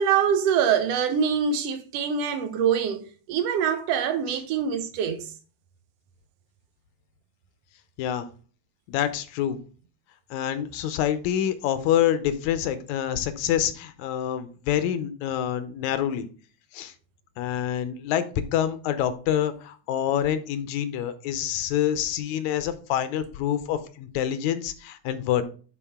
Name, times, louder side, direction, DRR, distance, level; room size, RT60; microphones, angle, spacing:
voice 1, 0.0-5.3, right 7 dB, 65° right, 1.8 m, -24 dB
voice 2, 8.9-9.6 10.3-16.3 16.7-16.9 17.4-25.4, left 10 dB, 80° left, 2.0 m, -26 dB
10.0 x 4.5 x 3.5 m
omnidirectional pair, 3.4 m